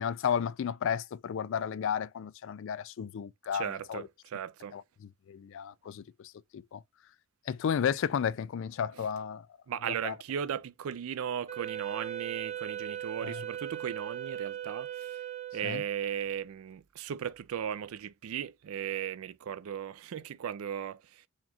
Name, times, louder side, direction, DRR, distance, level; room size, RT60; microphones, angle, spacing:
voice 1, 0.0-4.1 4.7-6.8 7.5-9.5 10.0-10.1 13.2-13.4 15.6-15.8, left 8 dB, 60° left, 0.3 m, -33 dB
voice 2, 3.5-4.8 9.7-15.1 15.5-21.2, right 8 dB, 75° right, 0.4 m, -37 dB
Wind instrument woodwind instrument, 11.5-16.0, right 11 dB, 30° right, 1.0 m, -39 dB
4.3 x 2.4 x 2.7 m
head